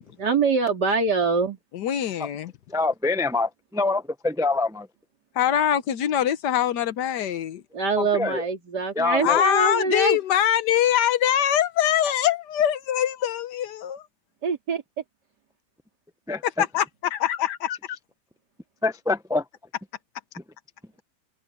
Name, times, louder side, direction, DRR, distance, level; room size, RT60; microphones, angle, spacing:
voice 1, 0.2-1.6 7.7-10.2 14.4-14.8, right 4 dB, 85° right, 3.6 m, -24 dB
voice 2, 1.7-2.5 5.3-7.6 9.2-14.1 16.4-17.8, left 10 dB, 90° left, 1.5 m, -23 dB
voice 3, 2.7-4.9 8.2-8.4 9.0-9.4 16.3-16.4 18.8-19.4, left 3 dB, 5° right, 0.3 m, -25 dB
omnidirectional pair, 1.7 m